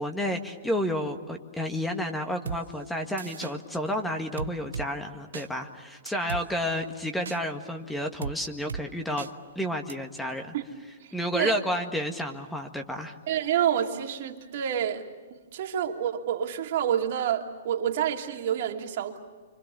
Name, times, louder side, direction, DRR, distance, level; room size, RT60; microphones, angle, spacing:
voice 1, 0.0-9.3 9.6-10.6 11.1-13.1, equal, 5° left, 4 dB, 1.8 m, -31 dB
sound 1, 2.5-2.6 3.2-3.5 4.4-4.9 5.3-5.5 6.1-6.4 7.3-7.4 8.2-8.4 8.7-8.8 9.2-9.3 9.9-10.0, right 6 dB, 80° right, 0.8 m, -35 dB
voice 2, 11.0-11.6 13.3-15.0 15.5-19.2, right 9 dB, 55° right, 3 dB, 2.7 m, -28 dB
29.0 x 25.5 x 7.0 m, 1.4 s
hypercardioid pair, 120°, 0 cm